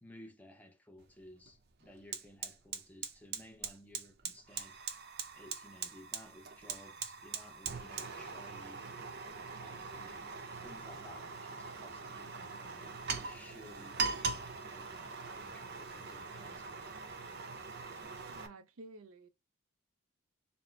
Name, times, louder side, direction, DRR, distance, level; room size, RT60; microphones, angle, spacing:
voice 1, 0.0-4.8 5.3-8.9 9.5-17.1, left 1 dB, 5° left, 0.6 m, -57 dB
Fire, 1.0-1.1 1.5-18.5, right 5 dB, 50° right, 0.7 m, -42 dB
voice 2, 18.1-19.3, right 2 dB, 85° right, 0.6 m, -53 dB
4.2 x 2.1 x 4.3 m
head